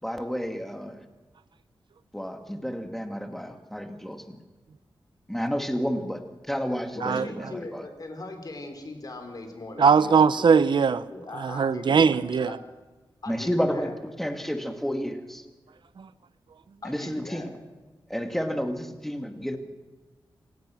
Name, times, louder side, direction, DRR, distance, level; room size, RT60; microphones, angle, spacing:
voice 1, 0.0-1.0 2.1-4.4 5.3-6.2 6.5-7.9 13.3-15.4 16.8-17.5 18.1-19.6, equal, 5° left, 6 dB, 2.2 m, -31 dB
voice 2, 7.0-10.7 11.1-12.6 13.2-13.9 16.8-17.5, left 2 dB, 45° left, 5 dB, 4.1 m, -40 dB
voice 3, 9.8-11.0 11.4-12.5 16.0-16.1, right 6 dB, 65° right, 15 dB, 0.8 m, -20 dB
27.0 x 16.5 x 6.3 m, 1.3 s
wide cardioid pair, 130°, 9 cm